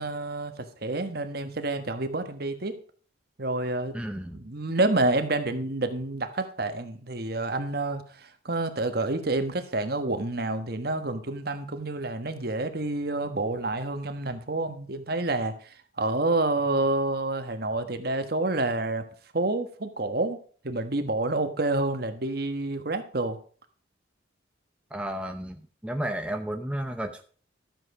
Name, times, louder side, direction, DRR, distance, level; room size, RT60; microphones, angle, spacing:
voice 1, 0.0-2.8 3.4-4.0 4.3-15.7 16.0-19.0 19.3-20.4 20.6-23.4, right 2 dB, 55° right, 8 dB, 1.3 m, -28 dB
voice 2, 3.9-4.4 24.9-27.2, right 1 dB, 5° right, 5 dB, 0.6 m, -33 dB
13.0 x 7.5 x 4.8 m, 0.43 s
head